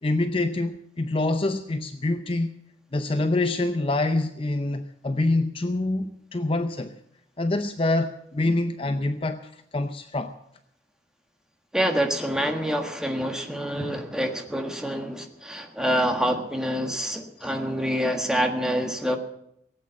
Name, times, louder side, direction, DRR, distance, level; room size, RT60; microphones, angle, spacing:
voice 1, 0.0-2.5 2.9-7.0 7.4-9.4 9.7-10.3 17.4-17.5, left 2 dB, 30° left, 8 dB, 0.6 m, -26 dB
voice 2, 11.7-19.2, equal, 5° right, 4 dB, 1.5 m, -26 dB
18.0 x 8.7 x 8.1 m, 0.74 s
head